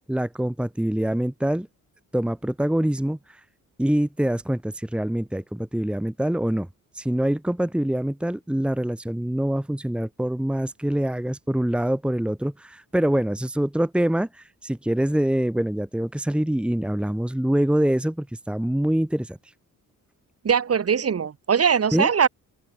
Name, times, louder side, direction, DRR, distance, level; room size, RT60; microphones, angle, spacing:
voice 1, 0.1-1.7 2.1-3.4 3.8-6.7 6.9-19.4 21.9-22.1, right 1 dB, 5° right, 1.6 m, -25 dB
voice 2, 20.4-22.3, right 7 dB, 45° right, 2.9 m, -21 dB
wide cardioid pair, 150°, 33 cm